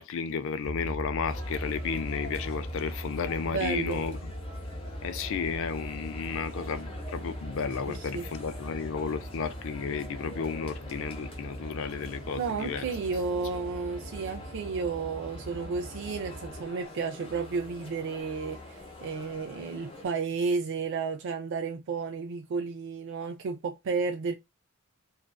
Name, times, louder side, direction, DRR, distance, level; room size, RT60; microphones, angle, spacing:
voice 1, 0.0-4.3 5.0-12.9, left 6 dB, 65° left, 0.4 m, -33 dB
sound 1, 0.6-16.6, equal, 25° right, 0.8 m, -40 dB
sound 2, 1.3-20.1, left 2 dB, 25° left, 0.6 m, -46 dB
voice 2, 3.5-4.0 7.9-8.3 12.4-24.3, right 4 dB, 60° right, 0.3 m, -32 dB
2.5 x 2.2 x 2.2 m
head